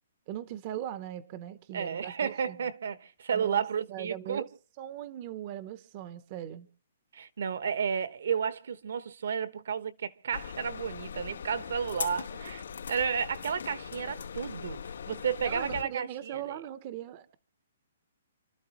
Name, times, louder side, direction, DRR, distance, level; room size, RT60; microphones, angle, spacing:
voice 1, 0.3-2.6 3.3-3.6 3.9-4.5 4.8-6.7 15.4-17.4, right 11 dB, 25° right, 0.7 m, -39 dB
voice 2, 1.7-4.4 7.1-12.6 12.9-14.8 15.1-16.4, right 7 dB, 60° right, 1.1 m, -32 dB
sound 1, 10.3-15.8, left 7 dB, 75° left, 3.0 m, -40 dB
29.0 x 13.0 x 3.0 m
hypercardioid pair, 175°, 0 cm